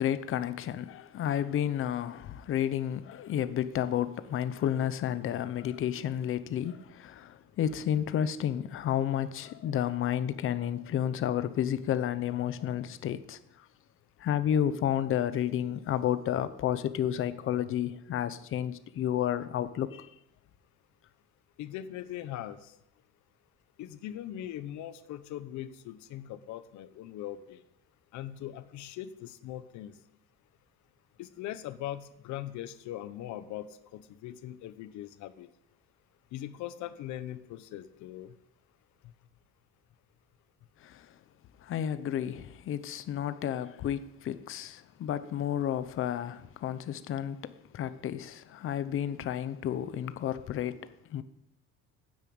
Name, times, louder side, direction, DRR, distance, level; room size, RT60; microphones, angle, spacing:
voice 1, 0.0-13.4 14.2-20.1 40.8-41.1 41.6-51.2, left 10 dB, 40° left, 0.9 m, -31 dB
voice 2, 21.6-22.7 23.8-27.6 28.1-30.0 31.2-35.5 36.3-38.3, left 12 dB, 60° left, 1.2 m, -40 dB
12.5 x 9.7 x 8.9 m
cardioid pair, 180°, 32 cm